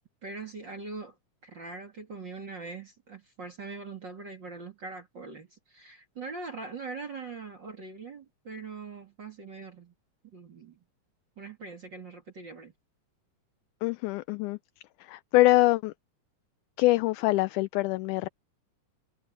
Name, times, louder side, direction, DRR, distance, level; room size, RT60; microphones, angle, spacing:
voice 1, 0.2-1.1 1.4-9.9 10.2-10.8 11.4-12.7, right 4 dB, 35° right, 2.6 m, -42 dB
voice 2, 13.8-14.6 15.0-15.9 16.8-18.3, left 19 dB, 80° left, 1.9 m, -24 dB
omnidirectional pair, 3.9 m